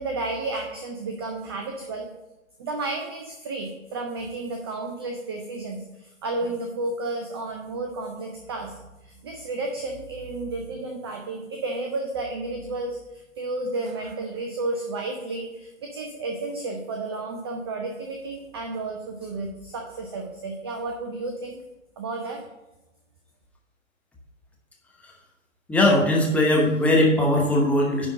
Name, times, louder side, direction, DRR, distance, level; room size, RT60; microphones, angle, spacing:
voice 1, 0.0-2.1 2.6-8.7 9.0-13.0 13.4-21.6 22.0-22.4, right 2 dB, 20° right, 2 dB, 0.4 m, -32 dB
voice 2, 25.7-28.1, left 1 dB, 5° left, -2 dB, 0.9 m, -19 dB
10.0 x 3.6 x 6.0 m, 1.0 s
hypercardioid pair, 135°, 40 cm